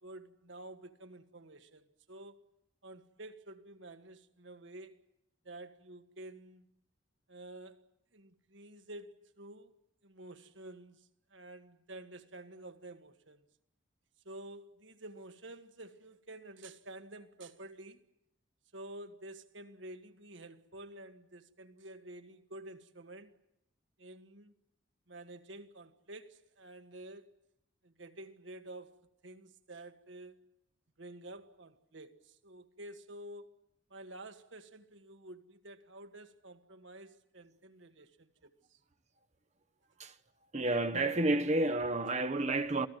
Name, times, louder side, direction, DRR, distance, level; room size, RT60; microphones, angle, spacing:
voice 1, 0.0-2.4 2.8-5.0 5.4-6.7 7.3-7.8 8.1-9.7 10.0-13.4 14.2-18.0 18.7-23.3 24.0-24.5 25.1-27.3 27.8-30.4 31.0-33.5 33.9-38.8 42.0-42.1, right 1 dB, 65° right, 1.6 m, -50 dB
voice 2, 40.5-42.9, right 2 dB, 35° right, 0.9 m, -30 dB
28.5 x 18.0 x 9.2 m
head